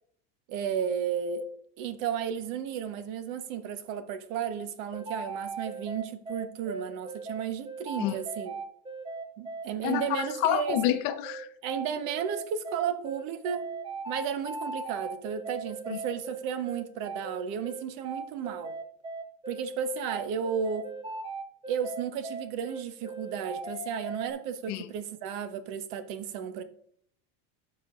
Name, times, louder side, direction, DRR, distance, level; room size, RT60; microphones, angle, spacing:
voice 1, 0.5-1.5 1.8-8.5 9.4-10.8 11.6-13.7 14.1-18.7 19.5-20.9 21.7-26.6, right 8 dB, 60° right, 0.9 m, -33 dB
sound 1, 4.9-24.3, right 3 dB, 15° right, 0.7 m, -38 dB
voice 2, 9.8-11.5 15.9-16.0 24.7-24.9, left 13 dB, 65° left, 0.8 m, -28 dB
13.5 x 5.2 x 2.5 m
supercardioid pair, 135°, 36 cm